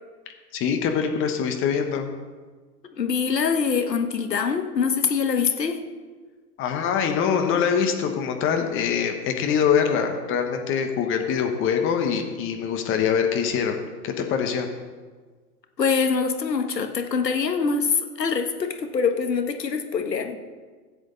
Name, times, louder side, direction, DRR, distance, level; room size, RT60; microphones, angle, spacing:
voice 1, 0.5-2.1 6.6-13.8 14.0-14.7, left 7 dB, 25° left, 5 dB, 1.2 m, -24 dB
voice 2, 2.9-5.8 15.8-20.4, left 5 dB, 90° left, 6 dB, 1.5 m, -24 dB
15.0 x 7.9 x 4.0 m, 1.5 s
hypercardioid pair, 120°, 48 cm